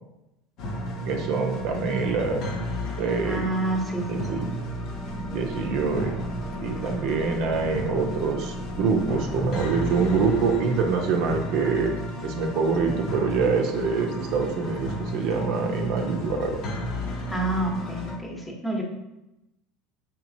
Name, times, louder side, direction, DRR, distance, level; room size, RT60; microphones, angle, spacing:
sound 1, 0.6-18.2, left 1 dB, 60° left, 0.8 m, -33 dB
voice 1, 1.1-2.4 3.0-3.4 4.1-4.5 5.3-6.1 6.6-11.9 12.2-16.6, right 5 dB, 65° right, 2 dB, 0.6 m, -25 dB
voice 2, 3.2-4.2 17.3-18.8, right 2 dB, 10° left, 0 dB, 0.9 m, -28 dB
sound 2, 4.1-12.7, right 4 dB, 30° right, 0.8 m, -43 dB
4.8 x 3.0 x 2.6 m, 0.93 s
supercardioid pair, 105°, 0 cm